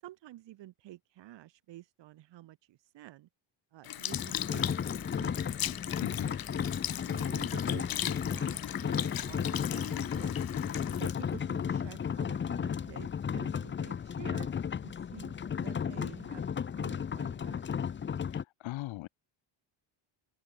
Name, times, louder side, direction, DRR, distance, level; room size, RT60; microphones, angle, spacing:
voice 1, 0.0-3.3 3.7-5.5 6.8-10.5 11.0-14.5 14.8-17.6, right 15 dB, 70° right, 7.7 m, -50 dB
Sink (filling or washing) / Liquid, 3.8-12.4 13.0-13.2, left 12 dB, 50° left, 2.6 m, -38 dB
sound 1, 4.1-18.4, left 7 dB, 25° left, 1.0 m, -34 dB
voice 2, 6.0-6.4 18.3-19.1, left 18 dB, 90° left, 5.0 m, -39 dB
open air
cardioid pair, 160°, 45 cm